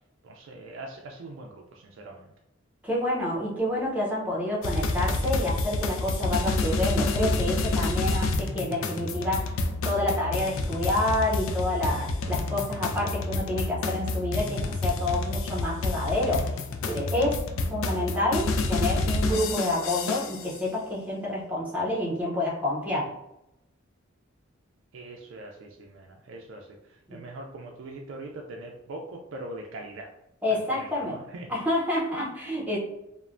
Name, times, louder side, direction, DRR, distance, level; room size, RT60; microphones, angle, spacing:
voice 1, 0.2-2.3 24.9-30.1 30.5-31.5, right 2 dB, 70° right, 1 dB, 0.3 m, -42 dB
voice 2, 2.8-9.5 9.8-16.6 16.8-23.2 30.4-31.2 31.5-32.8, left 1 dB, 10° right, -4 dB, 0.6 m, -28 dB
sound 1, 4.6-20.5, left 2 dB, 90° left, 0.3 m, -28 dB
3.0 x 2.0 x 2.4 m, 0.87 s
head